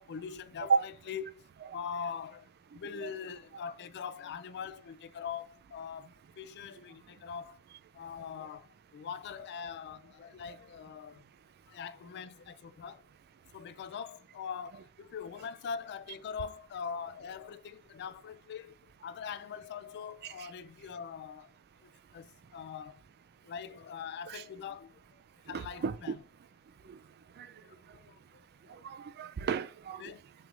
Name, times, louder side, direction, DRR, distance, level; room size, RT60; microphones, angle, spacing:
voice 1, 0.0-1.4 1.7-2.5 2.7-6.1 6.4-7.6 7.9-8.7 8.9-11.2 11.7-13.0 13.5-18.7 19.0-21.5 21.8-23.0 23.4-25.2 25.5-26.2 27.6-28.2 30.0-30.2, left 7 dB, 50° left, 0.3 m, -42 dB
voice 2, 25.5-26.0 27.4-27.5 28.7-30.0, right 6 dB, 45° right, 0.3 m, -33 dB
6.0 x 3.3 x 2.4 m
head